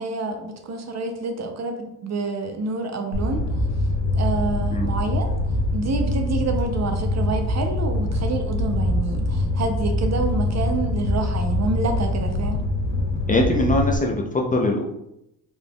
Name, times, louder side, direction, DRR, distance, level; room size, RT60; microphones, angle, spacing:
voice 1, 0.0-3.4 4.1-5.4 5.7-12.6, right 3 dB, 40° right, 5 dB, 0.6 m, -28 dB
Fire, 3.1-14.0, left 1 dB, 80° left, 0.9 m, -24 dB
voice 2, 13.3-14.8, left 1 dB, 20° left, -1 dB, 0.5 m, -22 dB
4.0 x 3.3 x 2.3 m, 0.83 s
cardioid pair, 90°, 42 cm